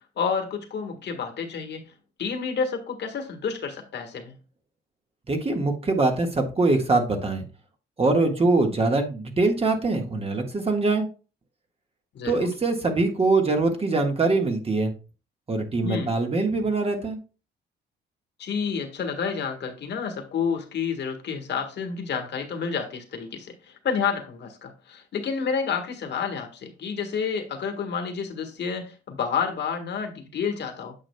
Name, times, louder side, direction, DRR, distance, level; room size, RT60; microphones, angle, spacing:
voice 1, 0.2-1.8 2.2-4.3 12.1-12.5 15.8-16.1 18.4-30.9, left 6 dB, 60° left, 1.6 m, -29 dB
voice 2, 5.3-7.4 8.0-11.1 12.2-14.9 15.5-17.2, right 3 dB, 30° right, 1.6 m, -23 dB
8.7 x 6.3 x 2.3 m
cardioid pair, 90°, 20 cm